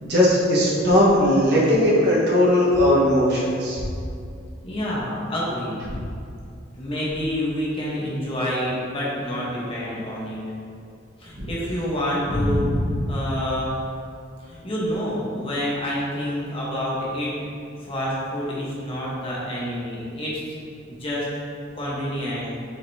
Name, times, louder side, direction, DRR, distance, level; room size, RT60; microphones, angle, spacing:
voice 1, 0.0-3.8 5.9-6.0 11.4-11.5 12.3-13.0, left 1 dB, 55° right, -6 dB, 1.5 m, -19 dB
voice 2, 4.6-5.8 6.8-10.4 11.2-12.6 13.1-13.7 14.5-17.3 17.9-20.4 20.9-21.3 21.7-22.5, equal, 30° left, -6 dB, 1.2 m, -28 dB
6.5 x 5.0 x 2.8 m, 2.4 s
head